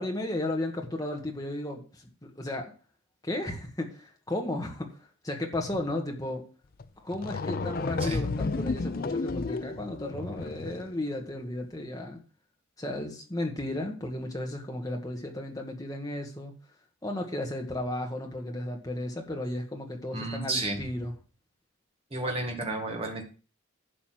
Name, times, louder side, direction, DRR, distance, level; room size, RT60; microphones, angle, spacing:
voice 1, 0.0-2.7 3.2-6.4 7.0-12.2 12.8-16.5 17.0-21.1, left 1 dB, 15° left, 1 dB, 1.6 m, -34 dB
sound 1, 6.8-6.9 7.1-10.9, left 3 dB, 40° left, 0.5 m, -32 dB
voice 2, 20.1-20.8 22.1-23.2, right 2 dB, 25° right, 1 dB, 1.9 m, -32 dB
11.5 x 4.2 x 7.7 m, 0.37 s
head